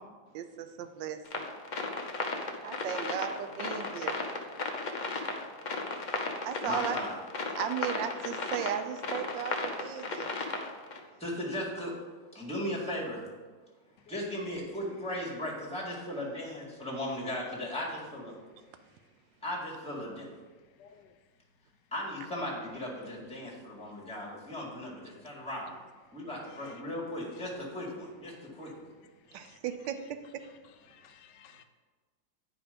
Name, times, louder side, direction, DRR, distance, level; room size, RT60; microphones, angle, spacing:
voice 1, 0.3-1.5 2.6-4.2 6.4-7.0 7.6-10.3 29.3-30.0, right 9 dB, 80° right, 1.3 m, -36 dB
sound 1, 1.2-11.0, left 3 dB, 50° left, 0.5 m, -35 dB
voice 2, 6.6-7.1 11.2-11.9 12.3-13.2 14.1-18.4 19.4-20.2 21.9-25.7 26.1-28.9, left 1 dB, 5° left, 1.9 m, -37 dB
voice 3, 20.8-21.2 26.5-26.8 28.6-28.7 29.3-29.6 30.9-31.6, left 8 dB, 75° left, 1.3 m, -56 dB
9.4 x 5.0 x 5.1 m
omnidirectional pair, 2.0 m